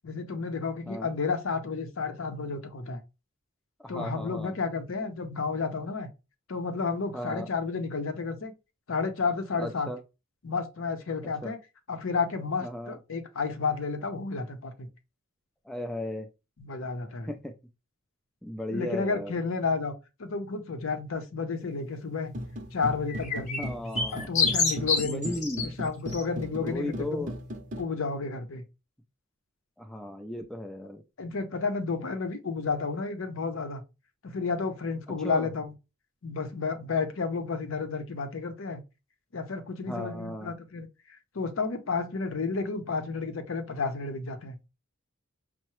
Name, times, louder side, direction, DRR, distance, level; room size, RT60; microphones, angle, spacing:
voice 1, 0.0-3.0 3.9-6.1 6.5-8.5 8.9-9.9 10.4-11.6 11.9-14.9 16.6-17.3 18.7-19.9 20.2-22.3 22.7-23.7 24.1-25.3 25.8-27.3 27.8-28.6 31.2-33.8 34.2-35.7 36.2-38.8 39.3-44.6, left 4 dB, 65° left, 0.6 m, -31 dB
voice 2, 3.8-4.6 7.1-7.5 9.6-10.0 11.4-11.5 12.6-13.0 15.7-16.3 17.3-17.5 18.4-19.3 23.6-24.3 25.0-25.7 26.6-27.4 29.8-31.0 35.2-35.5 39.9-40.5, left 1 dB, ahead, 0.3 m, -36 dB
sound 1, 22.2-27.8, equal, 35° right, 0.6 m, -37 dB
sound 2, 23.1-25.7 26.1-26.2, left 4 dB, 35° left, 0.8 m, -28 dB
5.5 x 2.0 x 3.0 m
head